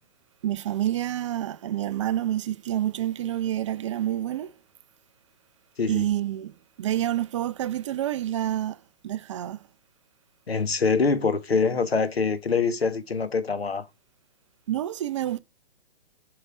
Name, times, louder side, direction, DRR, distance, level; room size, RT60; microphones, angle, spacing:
voice 1, 0.4-4.5 5.9-9.6 14.7-15.4, right 12 dB, 30° right, 0.5 m, -28 dB
voice 2, 10.5-13.8, left 4 dB, 85° left, 1.4 m, -24 dB
7.3 x 5.6 x 5.9 m
figure-of-eight pair, 130°, 30 cm